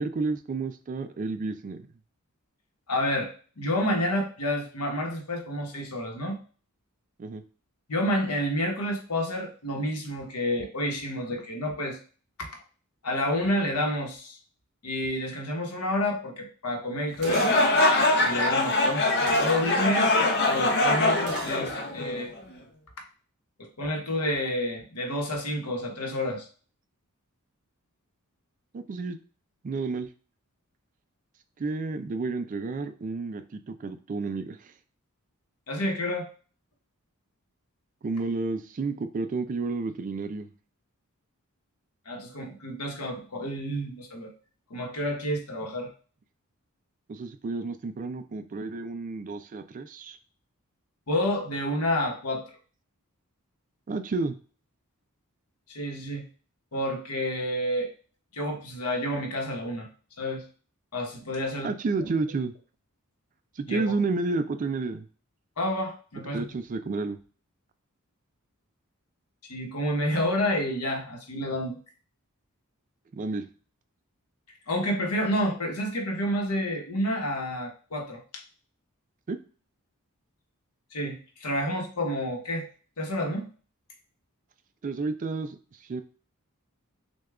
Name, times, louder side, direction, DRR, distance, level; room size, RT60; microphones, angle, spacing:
voice 1, 0.0-1.9 7.2-7.4 28.7-29.2 29.6-30.1 31.6-34.7 38.0-40.5 47.1-50.2 53.9-54.3 61.6-62.5 63.6-65.1 66.3-67.2 73.1-73.5 79.3-79.4 84.8-85.6 85.9-86.0, right 3 dB, 35° right, 9 dB, 0.3 m, -31 dB
voice 2, 2.9-6.4 7.9-12.0 13.0-14.4 14.8-17.6 18.2-19.1 19.4-22.3 23.6-26.5 35.7-36.3 42.1-44.3 44.7-45.9 51.1-52.4 55.7-56.2 56.7-57.9 58.3-59.9 60.2-60.4 60.9-61.7 63.7-63.9 65.6-66.5 69.5-71.8 74.7-78.2 80.9-81.2 81.4-82.7 83.0-83.5, left 1 dB, 80° left, 2 dB, 1.0 m, -29 dB
sound 1, 17.2-22.4, left 2 dB, 50° left, 0.6 m, -23 dB
sound 2, 17.2-17.6 19.3-19.6 21.3-21.6, right 6 dB, 80° right, 0.6 m, -40 dB
6.3 x 2.3 x 2.3 m, 0.39 s
head